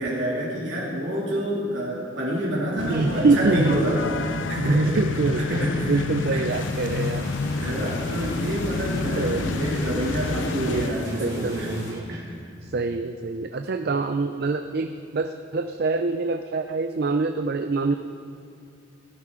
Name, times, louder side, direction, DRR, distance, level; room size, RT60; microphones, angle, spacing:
voice 1, 0.0-5.0 5.3-6.0 6.3-6.5 6.7-6.9 7.6-11.7 12.1-12.3, equal, 85° right, -5 dB, 2.5 m, -27 dB
sound 1, 2.8-10.9, left 4 dB, 90° left, 0.5 m, -30 dB
voice 2, 2.9-3.9 4.6-5.5 5.8-7.3 9.2-9.4 10.6-12.1 12.6-17.9, right 3 dB, 55° right, 7 dB, 0.5 m, -25 dB
sound 2, 5.5-12.5, right 1 dB, 20° right, 1.9 m, -42 dB
sound 3, 6.5-11.9, left 1 dB, 45° left, 3.7 m, -41 dB
18.0 x 12.0 x 3.7 m, 2.5 s
head